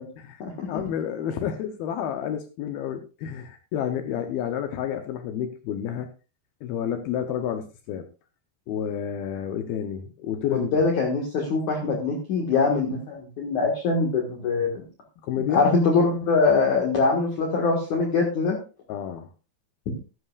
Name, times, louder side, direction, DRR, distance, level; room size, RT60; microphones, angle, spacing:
voice 1, 0.7-6.1 6.6-8.1 8.7-10.8 15.2-15.6 18.9-19.3, left 9 dB, 75° left, 7 dB, 2.3 m, -30 dB
voice 2, 10.7-14.8 15.5-18.6, left 4 dB, 55° left, 0 dB, 2.4 m, -23 dB
14.5 x 11.5 x 2.4 m, 0.33 s
omnidirectional pair, 5.3 m